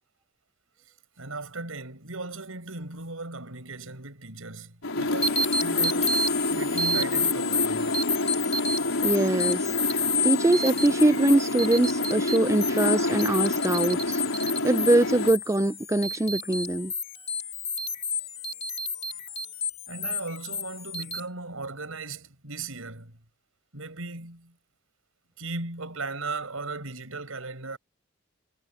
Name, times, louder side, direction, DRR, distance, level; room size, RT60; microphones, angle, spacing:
voice 1, 1.2-8.0 19.9-23.2 23.7-24.6 25.4-27.8, right 3 dB, 90° right, 5.6 m, -37 dB
sound 1, 4.8-15.3, left 2 dB, 85° left, 4.6 m, -28 dB
sound 2, 5.2-21.2, left 3 dB, 30° left, 2.7 m, -30 dB
voice 2, 9.0-16.9, right 1 dB, 15° right, 0.4 m, -23 dB
head